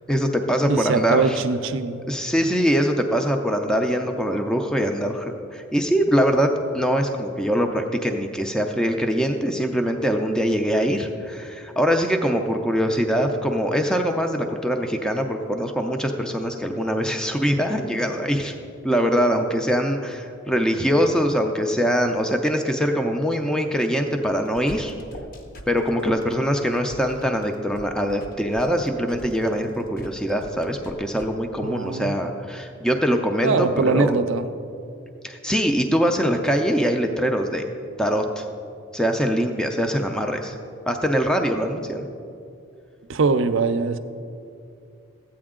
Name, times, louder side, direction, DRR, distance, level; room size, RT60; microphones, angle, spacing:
voice 1, 0.1-1.4 2.1-18.5 18.8-24.9 25.7-34.1 35.2-37.7 38.0-38.4 38.9-40.6 40.9-42.1, equal, 5° left, 4 dB, 0.4 m, -23 dB
voice 2, 0.7-2.0 31.6-32.1 33.4-34.5 43.1-44.0, right 4 dB, 60° right, 10 dB, 0.5 m, -22 dB
sound 1, 24.5-31.3, equal, 45° left, 0.8 m, -43 dB
13.0 x 8.6 x 3.7 m, 2.5 s
head